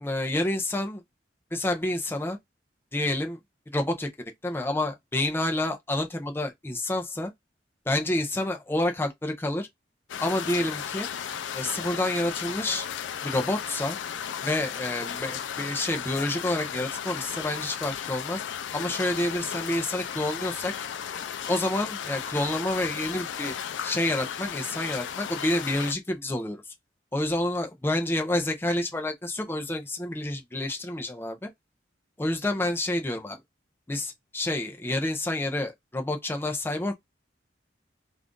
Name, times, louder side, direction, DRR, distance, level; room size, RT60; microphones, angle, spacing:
voice 1, 0.0-1.0 1.5-2.4 2.9-3.4 3.7-7.3 7.9-9.7 10.2-11.1 11.5-12.9 13.2-14.0 14.4-18.4 18.7-20.7 21.5-23.5 23.8-26.6 27.1-31.5 32.2-33.4 33.9-36.9, left 1 dB, 10° left, 0.5 m, -28 dB
sound 1, 10.1-25.9, left 8 dB, 90° left, 0.4 m, -35 dB
2.5 x 2.4 x 3.6 m
head